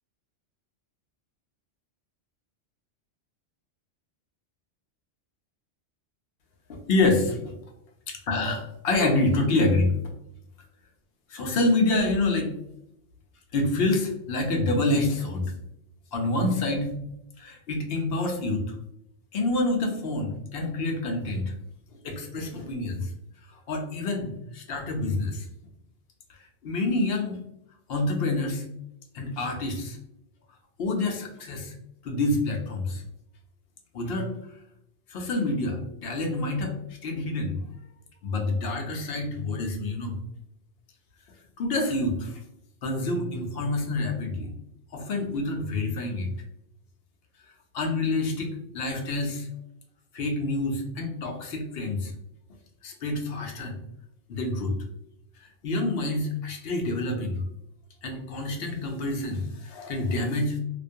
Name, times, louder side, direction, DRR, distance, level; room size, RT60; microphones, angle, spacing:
voice 1, 6.7-7.5 8.1-9.9 11.3-12.5 13.5-15.5 16.1-17.0 17.4-18.6 19.3-21.5 22.0-23.1 23.5-25.5 26.3-27.4 27.9-28.6 29.1-30.0 30.8-31.7 32.0-33.0 33.9-34.3 35.1-37.6 38.2-40.2 41.6-42.4 42.8-44.5 44.9-46.3 47.7-49.5 50.1-52.1 52.8-53.7 54.3-54.8 55.4-57.4 58.0-60.6, left 2 dB, 65° left, 2 dB, 0.7 m, -27 dB
2.4 x 2.2 x 2.6 m, 0.79 s
omnidirectional pair, 1.2 m